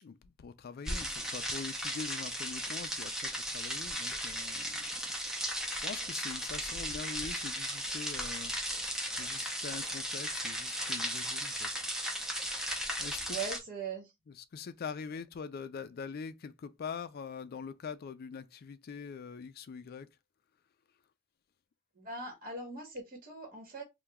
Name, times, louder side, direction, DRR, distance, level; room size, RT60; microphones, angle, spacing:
voice 1, 0.0-4.9 5.3-5.4 5.7-8.6 9.2-11.7 13.0-13.4 14.4-20.1, left 5 dB, 50° left, 0.4 m, -43 dB
sound 1, 0.9-13.6, equal, 5° right, 0.5 m, -36 dB
voice 2, 13.3-14.1 22.0-23.8, right 4 dB, 40° right, 1.1 m, -40 dB
2.9 x 2.2 x 3.4 m
head